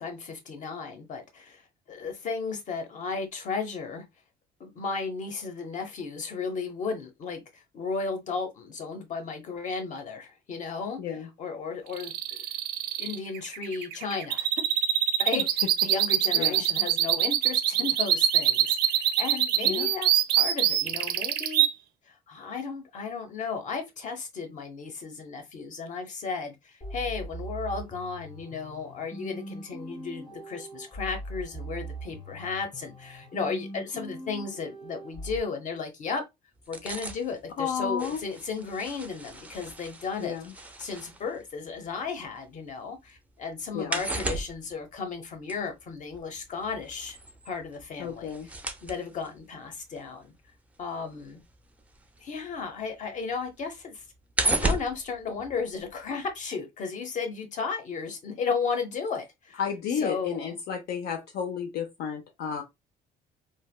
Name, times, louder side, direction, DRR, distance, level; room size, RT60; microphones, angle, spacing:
voice 1, 0.0-1.6 1.9-4.0 4.6-11.0 11.4-12.4 13.0-14.5 15.2-21.7 22.1-36.2 36.7-40.3 40.8-47.2 47.4-48.3 48.8-50.3 50.8-51.4 52.2-54.0 54.4-59.6 60.0-60.5, left 5 dB, 50° left, 0.9 m, -34 dB
voice 2, 11.0-11.3 15.3-15.4 16.3-16.6 19.6-19.9 37.6-38.2 40.2-40.5 43.7-44.0 48.0-48.5 59.6-62.6, left 7 dB, 70° left, 0.5 m, -32 dB
sound 1, 11.9-21.7, right 11 dB, 70° right, 0.5 m, -24 dB
sound 2, 26.8-35.4, right 1 dB, 30° left, 1.2 m, -41 dB
sound 3, 36.6-42.7 43.0-52.7 53.0-56.1 56.4-56.5, right 2 dB, 10° right, 0.4 m, -35 dB
3.2 x 2.2 x 2.3 m
cardioid pair, 110°, 17 cm